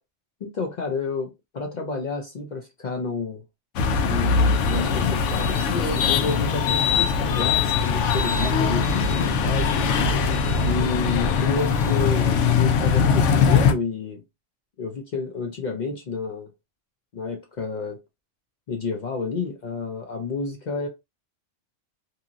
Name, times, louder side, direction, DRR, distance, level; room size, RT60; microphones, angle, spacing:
voice 1, 0.4-3.4 4.1-9.7 10.6-14.2 14.8-16.5 17.1-18.0 18.7-20.9, left 4 dB, 55° left, 0.5 m, -30 dB
sound 1, 3.8-13.7, left 5 dB, 85° left, 0.9 m, -21 dB
2.7 x 2.7 x 2.4 m
omnidirectional pair, 1.2 m